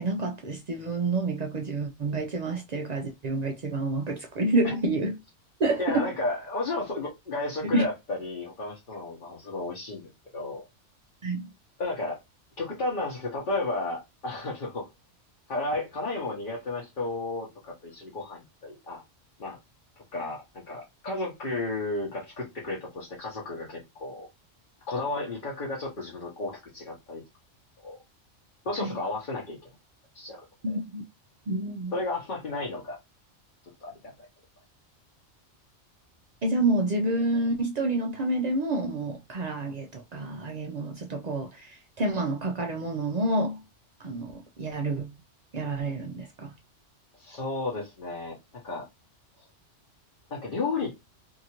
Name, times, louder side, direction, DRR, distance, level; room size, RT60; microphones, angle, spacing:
voice 1, 0.0-5.2 5.6-6.1 7.7-7.8 11.2-11.5 28.8-29.0 30.6-31.0 31.5-31.9 36.4-43.6 44.0-45.1 45.5-46.5, right 2 dB, 65° right, 0.4 m, -28 dB
voice 2, 5.8-10.6 11.8-12.2 12.6-14.9 15.5-19.0 19.4-19.6 20.1-24.3 24.9-27.2 27.8-28.0 28.6-29.6 30.1-30.4 31.9-33.0 33.8-34.3 47.2-48.4 48.6-48.9 50.3-50.9, left 2 dB, 45° left, 1.0 m, -33 dB
2.8 x 2.4 x 2.8 m
omnidirectional pair, 1.3 m